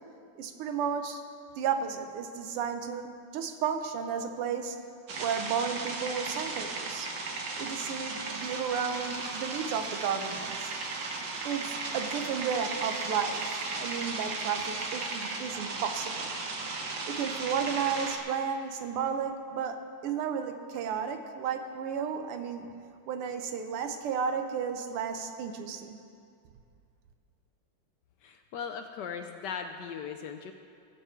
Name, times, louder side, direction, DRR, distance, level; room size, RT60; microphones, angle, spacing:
voice 1, 0.4-1.2 1.6-4.8 5.2-7.1 7.6-10.7 11.5-16.3 17.1-22.7 23.1-26.0, right 7 dB, 85° right, 7 dB, 1.8 m, -33 dB
sound 1, 5.1-18.2, right 3 dB, 55° right, 1.6 m, -36 dB
voice 2, 28.2-30.5, left 7 dB, 75° left, 6 dB, 1.0 m, -38 dB
20.5 x 7.8 x 4.5 m, 2.4 s
omnidirectional pair, 2.4 m